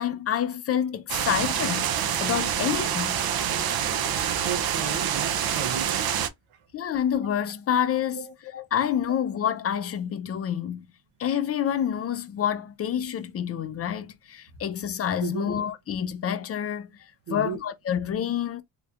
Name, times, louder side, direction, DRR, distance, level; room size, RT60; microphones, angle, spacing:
voice 1, 0.0-1.9 2.2-3.2 6.7-10.9 11.2-16.9 17.3-18.6, left 9 dB, 30° left, 0.4 m, -28 dB
sound 1, 1.1-6.3, right 9 dB, 50° right, 0.6 m, -26 dB
voice 2, 4.4-6.0 8.2-8.3 15.2-15.5 17.3-17.6, right 6 dB, 80° right, 0.9 m, -33 dB
3.5 x 2.8 x 2.3 m
cardioid pair, 130°, 48 cm